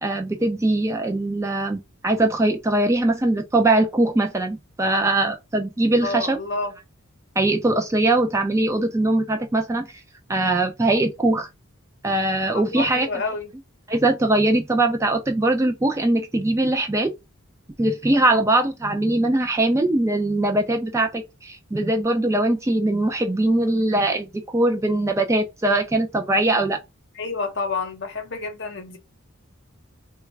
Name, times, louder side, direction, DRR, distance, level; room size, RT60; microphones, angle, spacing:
voice 1, 0.0-6.4 7.4-9.9 10.3-11.5 12.0-13.1 13.9-17.1 17.8-26.8, right 2 dB, 15° right, 0.3 m, -21 dB
voice 2, 6.0-6.7 12.5-13.5 18.2-18.4 27.1-29.0, left 3 dB, 50° left, 0.8 m, -29 dB
3.1 x 2.3 x 3.2 m
head